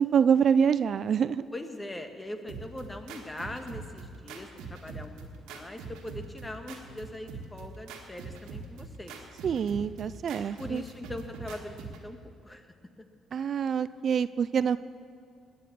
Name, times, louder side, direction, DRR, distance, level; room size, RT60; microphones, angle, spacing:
voice 1, 0.0-1.5 9.4-10.8 13.3-14.8, right 7 dB, 55° right, 15 dB, 0.4 m, -25 dB
voice 2, 1.5-9.2 10.6-12.2 12.4-12.7, left 1 dB, 20° left, 6 dB, 1.7 m, -41 dB
sound 1, 2.5-12.1, right 4 dB, 75° right, 1.7 m, -43 dB
19.5 x 8.6 x 7.1 m, 2.4 s
hypercardioid pair, 55°, 0 cm